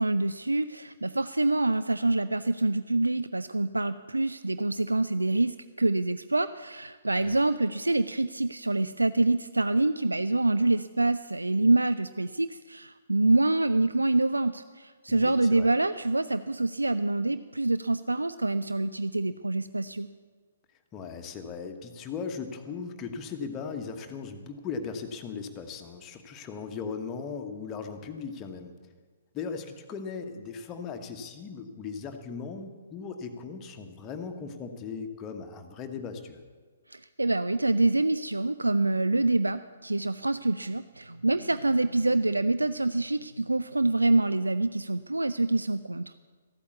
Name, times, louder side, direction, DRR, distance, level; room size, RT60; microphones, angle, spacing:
voice 1, 0.0-20.1 36.9-46.2, right 2 dB, 80° right, 13 dB, 0.4 m, -26 dB
voice 2, 15.1-15.7 20.9-28.8 29.3-36.4, left 5 dB, 20° left, 5 dB, 1.2 m, -38 dB
14.0 x 8.6 x 8.1 m, 1.5 s
figure-of-eight pair, 125°, 0 cm